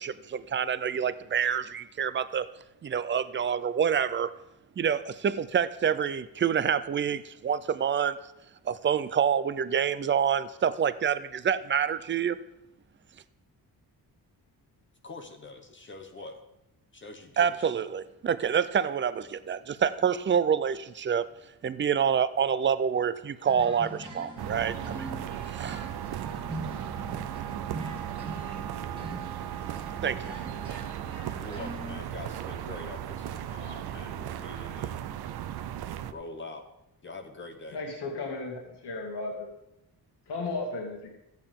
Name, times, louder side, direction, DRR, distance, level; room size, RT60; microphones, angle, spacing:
voice 1, 0.0-2.5 2.8-4.3 4.8-8.2 8.6-12.4 17.4-21.3 21.6-25.1 25.5-25.8 30.0-30.3, right 7 dB, 30° right, 15 dB, 0.4 m, -27 dB
voice 2, 15.0-16.4 16.9-17.9 31.4-35.2 36.1-36.6 37.0-37.8, left 2 dB, 30° left, 4 dB, 0.9 m, -44 dB
sound 1, 23.4-32.0, right 1 dB, 15° right, 1.7 m, -42 dB
sound 2, 24.4-36.1, right 11 dB, 75° right, 0.6 m, -36 dB
voice 3, 37.7-39.3 40.3-41.1, left 3 dB, 90° left, -1 dB, 2.2 m, -34 dB
14.0 x 8.9 x 3.7 m, 0.88 s
wide cardioid pair, 155°, 39 cm